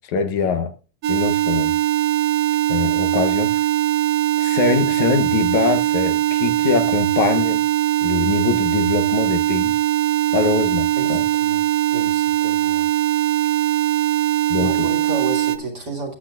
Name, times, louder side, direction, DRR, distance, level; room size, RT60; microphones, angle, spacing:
voice 1, 0.1-0.7 1.1-1.7 2.7-3.6 4.4-7.6 8.0-9.7 10.3-11.2 14.5-14.7, left 6 dB, 70° left, 2.2 m, -23 dB
sound 1, 1.0-15.6, right 14 dB, 70° right, 1.8 m, -20 dB
voice 2, 11.0-12.9 14.6-16.1, right 2 dB, 35° right, 3.0 m, -31 dB
19.5 x 8.4 x 2.4 m
omnidirectional pair, 3.6 m